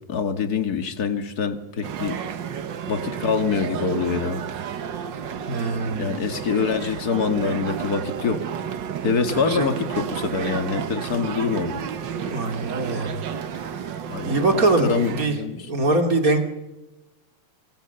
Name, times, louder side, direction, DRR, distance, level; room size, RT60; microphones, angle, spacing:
voice 1, 0.1-2.2 2.9-4.4 6.0-8.4 9.0-11.8 14.1-14.4 14.8-15.7, left 5 dB, 35° left, 9 dB, 1.7 m, -25 dB
sound 1, 1.8-15.3, right 8 dB, 60° right, 1.2 m, -31 dB
voice 2, 5.5-6.0 9.3-9.7 12.2-13.2 13.5-13.7 14.3-16.5, right 2 dB, 30° right, 6 dB, 2.6 m, -23 dB
29.0 x 25.5 x 6.9 m, 1.0 s
omnidirectional pair, 3.6 m